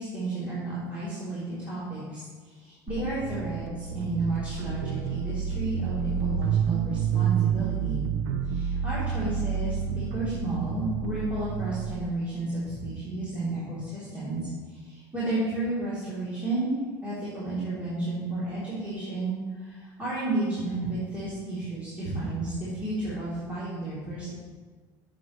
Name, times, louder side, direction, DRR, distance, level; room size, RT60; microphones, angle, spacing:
voice 1, 0.0-8.1 8.4-16.7 17.0-24.3, right 2 dB, 15° right, -12 dB, 3.5 m, -32 dB
sound 1, 2.9-12.0, right 7 dB, 90° right, 0.7 m, -29 dB
14.5 x 7.5 x 3.3 m, 1.5 s
cardioid pair, 140°, 9 cm